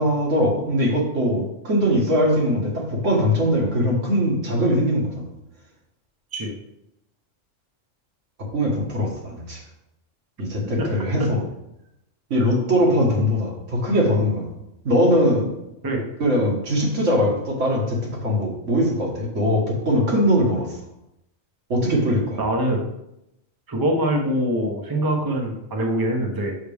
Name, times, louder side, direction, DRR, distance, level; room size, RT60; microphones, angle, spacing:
voice 1, 0.0-5.3 8.5-9.6 10.4-11.4 12.3-14.5 14.8-15.5 16.2-20.8 21.7-22.4, equal, 70° right, -2 dB, 1.9 m, -21 dB
voice 2, 22.4-22.9 23.7-26.5, right 1 dB, 20° right, 1 dB, 0.8 m, -23 dB
6.5 x 5.9 x 3.5 m, 0.86 s
omnidirectional pair, 1.3 m